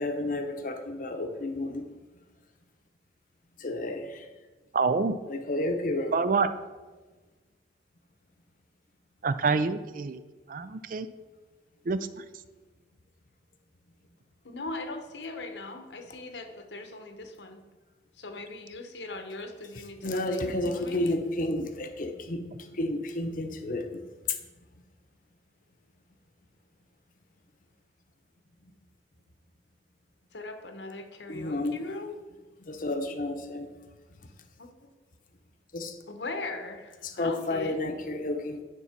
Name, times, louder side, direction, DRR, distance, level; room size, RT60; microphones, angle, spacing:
voice 1, 0.0-1.9 3.6-4.3 5.3-6.1 19.7-24.0 24.3-24.4 28.6-28.7 31.3-31.8 32.6-33.7 34.2-34.3 35.7-36.0 37.0-38.6, left 2 dB, 50° left, 0.8 m, -31 dB
voice 2, 4.7-5.2 6.1-6.5 9.2-10.2 10.5-11.1 11.9-12.2, right 4 dB, 50° right, 0.4 m, -27 dB
voice 3, 14.4-17.6 18.2-21.1 30.3-32.2 34.6-34.7 36.1-37.8, left 2 dB, 85° left, 1.1 m, -39 dB
9.8 x 4.1 x 5.9 m
head